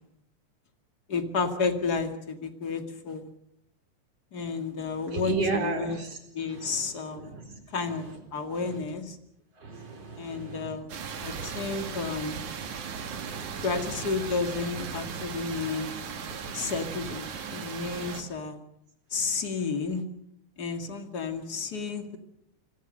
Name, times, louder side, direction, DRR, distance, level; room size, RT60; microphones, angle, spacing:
voice 1, 1.1-3.3 4.3-6.0 6.3-7.3 7.7-9.2 10.2-10.9 11.2-12.4 13.6-15.9 16.5-18.6 19.1-20.0 20.6-22.2, left 4 dB, 35° left, 7 dB, 2.5 m, -31 dB
voice 2, 5.1-6.2 6.5-6.8 7.1-7.6 8.6-8.8 9.6-10.8 11.3-12.0 12.9-13.7 15.6-15.7 16.4-16.7, right 3 dB, 50° right, 4 dB, 5.4 m, -35 dB
sound 1, 10.9-18.2, right 6 dB, 70° right, 3.5 m, -37 dB
27.0 x 23.0 x 6.5 m, 0.78 s
omnidirectional pair, 3.5 m